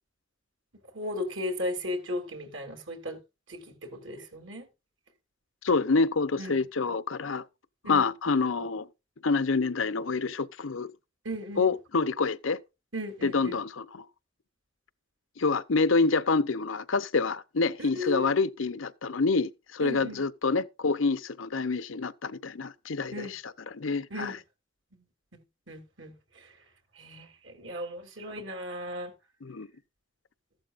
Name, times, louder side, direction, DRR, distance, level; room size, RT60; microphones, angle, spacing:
voice 1, 0.9-3.2 3.5-4.7 6.4-6.7 7.8-8.0 11.2-11.7 12.9-13.6 17.8-18.3 19.8-20.2 23.1-23.3 24.1-24.4 25.3-26.6 26.9-29.1, left 1 dB, 70° right, 3.0 m, -36 dB
voice 2, 5.6-7.4 7.9-8.9 9.2-10.9 11.6-12.6 13.2-14.0 15.4-24.4 29.4-29.7, left 4 dB, 85° left, 0.8 m, -27 dB
14.5 x 11.5 x 2.5 m
head